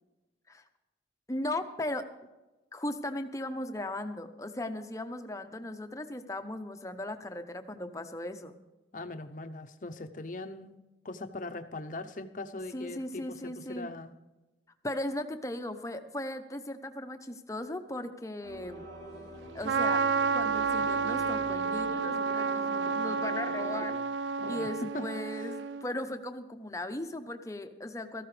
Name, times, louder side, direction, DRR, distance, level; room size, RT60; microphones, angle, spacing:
voice 1, 1.3-2.1 2.7-8.6 12.7-13.9 14.8-18.9 19.5-20.0 20.3-24.0 24.5-28.2, left 1 dB, 15° left, 7 dB, 0.8 m, -37 dB
voice 2, 8.9-14.2 24.4-24.7 24.9-25.1, left 2 dB, 45° left, 8 dB, 0.8 m, -41 dB
sound 1, 18.4-23.9, right 2 dB, 60° right, 4.6 m, -45 dB
Trumpet, 19.6-25.9, right 5 dB, 80° right, 0.3 m, -30 dB
17.5 x 14.0 x 3.3 m, 1.1 s
head